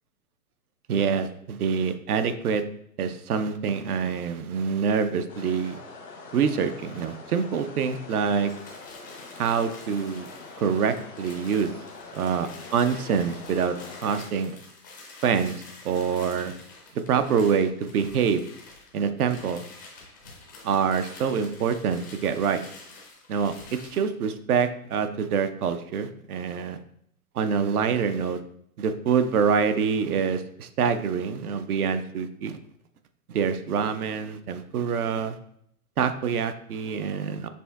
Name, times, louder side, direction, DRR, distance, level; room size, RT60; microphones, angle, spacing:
voice 1, 0.9-2.6 3.0-5.8 6.3-8.5 9.4-10.3 10.6-11.7 12.1-13.8 14.0-14.6 15.2-15.6 15.8-16.5 17.1-18.4 18.9-19.7 20.6-22.6 23.3-23.6 23.9-26.8 27.4-28.4 28.8-32.6 33.3-35.4 36.0-37.5, right 6 dB, 70° right, 10 dB, 0.6 m, -25 dB
sound 1, 5.3-14.3, left 3 dB, 90° left, 1.0 m, -44 dB
sound 2, 8.3-24.1, left 3 dB, 15° left, 0.3 m, -48 dB
6.7 x 2.7 x 2.3 m, 0.69 s
hypercardioid pair, 120°, 46 cm